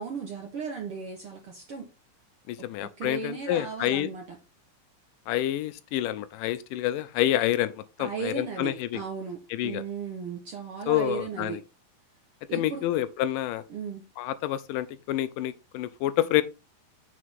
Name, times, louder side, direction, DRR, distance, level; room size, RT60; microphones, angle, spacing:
voice 1, 0.0-1.9 2.8-4.4 8.0-11.6 12.5-12.9 13.7-14.0, right 6 dB, 60° right, 1.5 m, -36 dB
voice 2, 2.5-4.1 5.3-9.0 9.5-9.8 10.9-11.6 12.5-13.6 14.2-16.4, left 13 dB, 80° left, 2.2 m, -28 dB
6.7 x 6.4 x 3.5 m
omnidirectional pair, 3.9 m